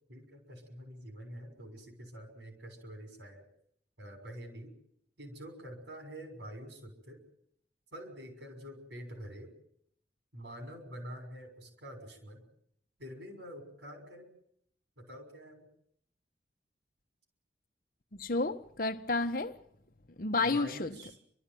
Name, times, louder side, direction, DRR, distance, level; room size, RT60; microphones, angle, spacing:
voice 1, 0.1-3.5 4.0-4.7 5.2-7.2 7.9-9.5 10.3-12.5 13.0-14.3 15.0-15.7 20.4-21.2, equal, 80° right, 6.1 m, -46 dB
voice 2, 18.2-19.6 20.2-20.9, left 3 dB, 50° left, 0.9 m, -31 dB
28.5 x 13.5 x 9.1 m
head